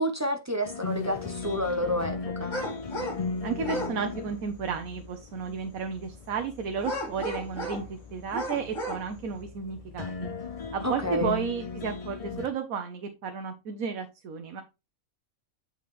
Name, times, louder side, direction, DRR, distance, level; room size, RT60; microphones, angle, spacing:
voice 1, 0.0-2.6 10.8-11.5, equal, 15° right, 0.6 m, -29 dB
sound 1, 0.6-12.5, left 4 dB, 35° left, 0.6 m, -37 dB
sound 2, 2.5-3.2 3.6-3.9 6.8-7.9 8.3-9.0, equal, 65° left, 2.6 m, -34 dB
voice 2, 3.4-10.3 10.7-14.6, right 6 dB, 85° right, 1.3 m, -33 dB
8.5 x 5.4 x 3.0 m
omnidirectional pair, 1.4 m